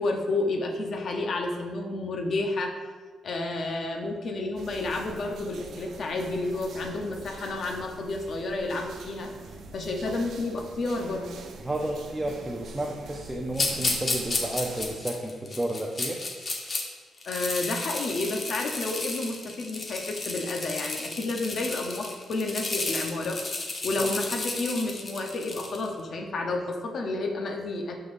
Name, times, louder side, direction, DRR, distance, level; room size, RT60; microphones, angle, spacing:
voice 1, 0.0-2.8 3.2-9.3 9.7-11.3 17.2-23.4 23.8-28.0, left 2 dB, 60° left, 1 dB, 0.9 m, -30 dB
sound 1, 4.6-15.0, right 3 dB, 70° right, 0.6 m, -44 dB
voice 2, 11.6-16.2, right 1 dB, 10° right, -1 dB, 0.6 m, -32 dB
sound 2, 13.5-16.8 17.2-25.9, left 3 dB, 35° left, 1.0 m, -32 dB
11.5 x 3.9 x 2.6 m, 1.4 s
cardioid pair, 95°, 0 cm